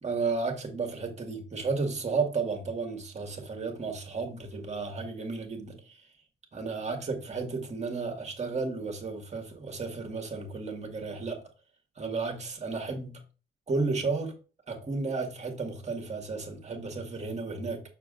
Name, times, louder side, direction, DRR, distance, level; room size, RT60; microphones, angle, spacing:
voice 1, 0.0-6.0 6.5-11.4 12.0-13.2 13.7-14.3 14.7-17.8, right 4 dB, 35° right, 2.0 m, -33 dB
6.6 x 6.5 x 2.6 m
cardioid pair, 90°, 20 cm